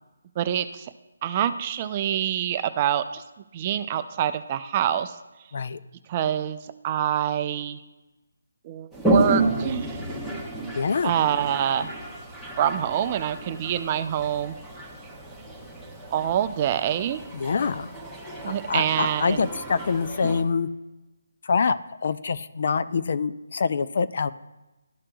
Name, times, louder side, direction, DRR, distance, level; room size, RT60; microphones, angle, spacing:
voice 1, 0.4-0.9 1.2-3.2 3.5-5.2 6.1-7.8 8.6-10.0 11.0-11.9 12.6-14.5 16.1-17.2 18.4-19.5, right 10 dB, 30° right, 11 dB, 0.4 m, -26 dB
Toilet flush, 8.9-20.4, right 2 dB, ahead, 1.0 m, -31 dB
voice 2, 10.8-11.1 17.3-17.9 18.4-20.7 21.4-24.3, left 5 dB, 55° left, 13 dB, 0.3 m, -25 dB
12.5 x 5.8 x 2.3 m, 1.1 s
figure-of-eight pair, 155°, 0 cm